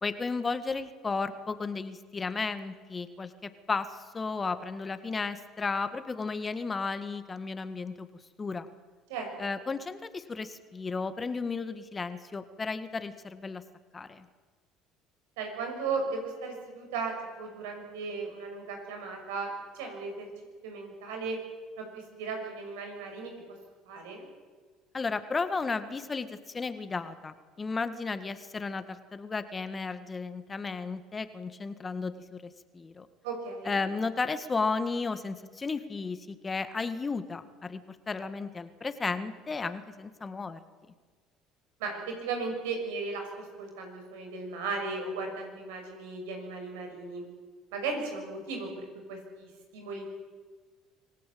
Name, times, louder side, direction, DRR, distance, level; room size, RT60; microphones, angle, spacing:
voice 1, 0.0-8.1 8.4-8.7 9.4-13.6 13.9-14.3 24.9-32.4 32.7-33.1 33.7-40.6, left 4 dB, 25° left, 11 dB, 1.8 m, -34 dB
voice 2, 9.1-9.6 15.4-20.3 20.6-21.4 21.8-23.3 23.9-24.3 33.2-33.8 41.8-47.2 47.7-50.1, right 4 dB, 85° right, 3 dB, 6.4 m, -36 dB
26.0 x 17.0 x 8.7 m, 1.5 s
supercardioid pair, 80°, 0 cm